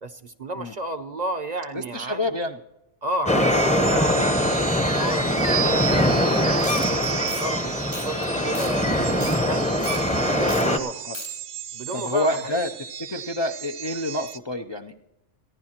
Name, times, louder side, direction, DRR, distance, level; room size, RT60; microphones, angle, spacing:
voice 1, 0.0-2.3 3.0-6.0 6.4-10.0 10.3-11.1 11.7-12.7, right 2 dB, 45° right, 11 dB, 0.7 m, -33 dB
voice 2, 1.7-2.6 11.1-11.2 11.9-12.7 13.0-14.9, left 1 dB, 40° left, 3 dB, 0.4 m, -28 dB
sound 1, 3.3-10.8, left 1 dB, 5° left, 0.7 m, -22 dB
sound 2, 3.5-14.4, right 9 dB, 75° right, 1.0 m, -34 dB
sound 3, 6.6-6.9 7.2-7.4 7.9-8.2 8.5-8.7 9.0-9.4 9.8-10.0 10.5-10.6 10.9-11.3, left 2 dB, 85° left, 6.5 m, -36 dB
28.5 x 10.5 x 2.9 m, 0.92 s
omnidirectional pair, 1.3 m